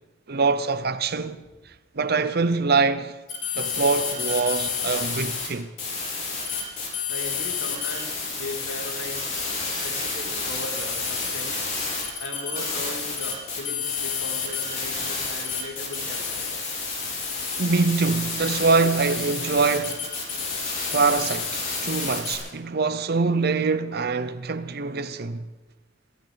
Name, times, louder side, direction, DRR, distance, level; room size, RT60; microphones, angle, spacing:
voice 1, 0.3-1.4 1.9-3.2 3.5-5.7 17.6-20.0 20.9-25.5, right 4 dB, 50° right, 0.8 m, -24 dB
sound 1, 3.3-5.5 5.8-22.3, left 5 dB, 40° left, 5.3 m, -29 dB
voice 2, 7.1-9.3 9.8-11.7 12.2-16.6, left 2 dB, 80° left, 3.0 m, -38 dB
26.0 x 13.5 x 4.0 m
head